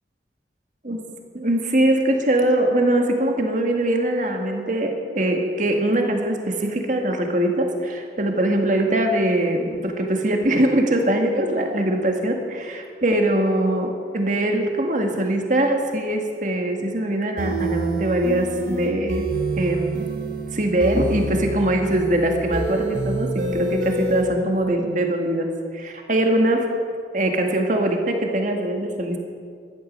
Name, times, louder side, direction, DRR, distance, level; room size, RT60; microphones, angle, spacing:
voice 1, 1.3-19.3 19.6-20.1 20.5-26.7 27.1-29.2, right 1 dB, 45° right, 3 dB, 1.9 m, -22 dB
sound 1, 17.4-24.2, right 2 dB, 80° right, 2.4 m, -27 dB
14.5 x 12.0 x 6.6 m, 2.2 s
head